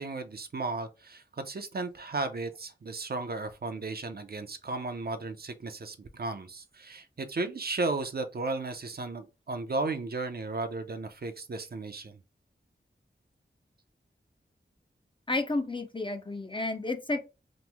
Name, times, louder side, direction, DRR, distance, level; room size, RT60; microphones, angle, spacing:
voice 1, 0.0-12.2, right 3 dB, 50° right, 0.5 m, -35 dB
voice 2, 15.3-17.2, left 2 dB, 25° left, 0.4 m, -31 dB
3.0 x 2.0 x 3.3 m
wide cardioid pair, 55°, 20 cm